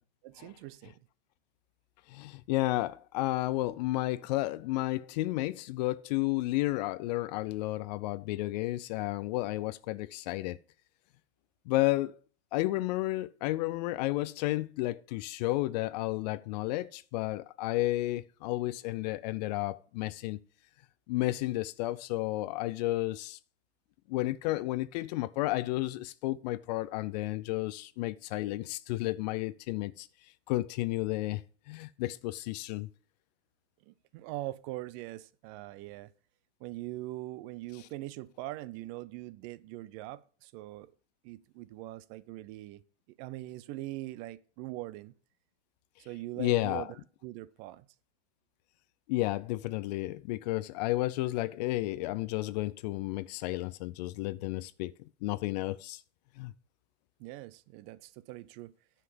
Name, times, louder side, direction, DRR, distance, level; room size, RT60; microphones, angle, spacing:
voice 1, 0.2-1.0 33.8-36.1 36.6-40.9 41.2-42.8 43.2-45.1 46.0-47.0 47.2-47.9 57.2-58.7, right 17 dB, 35° right, 0.6 m, -42 dB
voice 2, 2.1-10.6 11.7-12.2 12.5-20.4 21.1-23.4 24.1-30.1 30.5-31.4 31.7-32.9 46.4-46.9 49.1-54.9 55.2-56.0 56.4-56.5, left 18 dB, 40° left, 0.4 m, -32 dB
9.9 x 5.6 x 6.9 m
hypercardioid pair, 120°, 35 cm